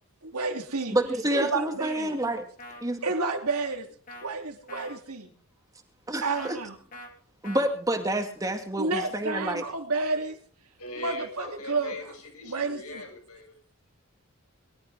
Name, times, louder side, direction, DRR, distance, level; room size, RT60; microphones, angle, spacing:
voice 1, 0.2-0.9 1.3-2.2 3.0-3.9 4.2-5.3 6.2-6.8 8.8-10.4 11.0-12.1 12.4-13.0, right 3 dB, 90° right, 3.0 m, -30 dB
voice 2, 0.9-2.5 2.8-3.0 6.1-6.6 7.4-9.6, right 1 dB, 15° right, 2.1 m, -28 dB
sound 1, 2.6-2.8 4.1-4.3 4.7-5.0 6.3-6.5 6.9-7.1 7.4-7.7, left 1 dB, 35° left, 2.7 m, -43 dB
voice 3, 10.8-13.6, left 1 dB, 90° left, 7.5 m, -40 dB
23.0 x 13.0 x 3.6 m
head